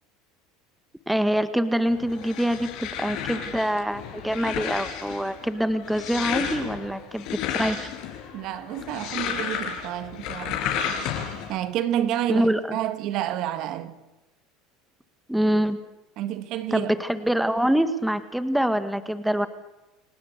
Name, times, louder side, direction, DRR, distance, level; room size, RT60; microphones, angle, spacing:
voice 1, 1.1-7.9 12.3-12.8 15.3-15.8 16.7-19.5, equal, ahead, 1.6 m, -25 dB
sound 1, 1.9-11.6, left 8 dB, 60° left, 5.7 m, -32 dB
voice 2, 8.3-10.7 11.5-14.0 16.2-16.9, right 11 dB, 60° right, 1.7 m, -29 dB
30.0 x 17.5 x 8.0 m
supercardioid pair, 110°, 0 cm